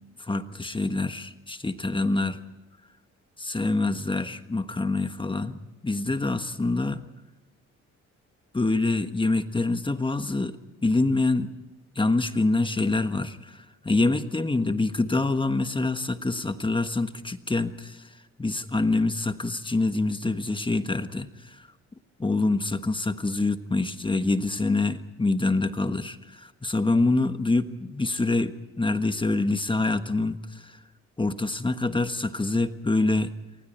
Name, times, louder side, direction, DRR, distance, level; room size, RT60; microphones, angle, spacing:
voice 1, 0.2-2.4 3.4-7.0 8.5-10.6 10.8-11.5 11.9-18.1 18.4-21.7 22.2-30.8 31.2-33.3, left 2 dB, 15° left, 9 dB, 1.4 m, -26 dB
28.5 x 24.0 x 4.4 m, 1.1 s
cardioid pair, 90°, 30 cm